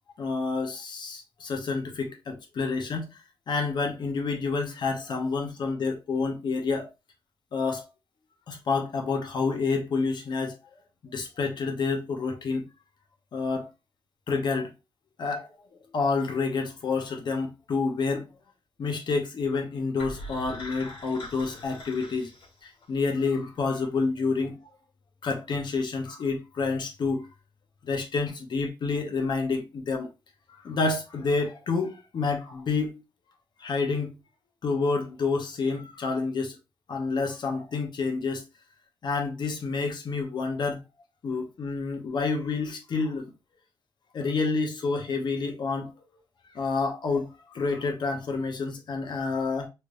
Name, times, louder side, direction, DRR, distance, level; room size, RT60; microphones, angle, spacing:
voice 1, 0.2-3.2 3.5-6.9 7.5-7.8 8.5-10.6 11.0-12.7 13.3-13.7 14.3-14.7 15.2-15.5 15.9-18.3 18.8-22.3 22.6-24.6 25.2-27.3 27.8-30.1 30.6-32.9 33.6-34.1 34.6-36.6 36.9-38.5 39.0-40.8 41.2-43.3 44.1-45.9 46.5-49.7, left 4 dB, 55° left, 0.9 m, -28 dB
sound 1, 20.0-23.0, left 1 dB, 75° left, 1.8 m, -42 dB
3.3 x 3.3 x 2.6 m
wide cardioid pair, 145°, 9 cm